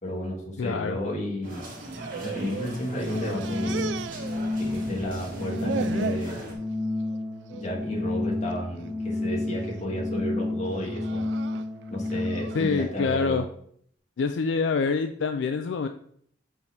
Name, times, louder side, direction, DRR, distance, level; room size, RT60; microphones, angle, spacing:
voice 1, 0.0-1.6 2.2-4.0 4.6-6.5 7.5-11.2 11.9-13.4, left 1 dB, 40° left, -2 dB, 1.9 m, -32 dB
voice 2, 0.6-1.0 12.5-13.5 14.2-15.9, left 4 dB, 70° left, 7 dB, 0.4 m, -26 dB
sound 1, 1.4-6.6, right 1 dB, 50° right, 1.9 m, -40 dB
sound 2, 1.7-2.7 3.0-4.9 5.2-6.3 6.8-7.2 7.5-7.7 8.5-8.9 9.4-9.8 10.6-12.8, right 6 dB, 65° right, 0.3 m, -37 dB
Organ, 2.4-12.7, left 2 dB, 5° right, 1.5 m, -31 dB
6.9 x 4.1 x 4.4 m, 0.65 s
head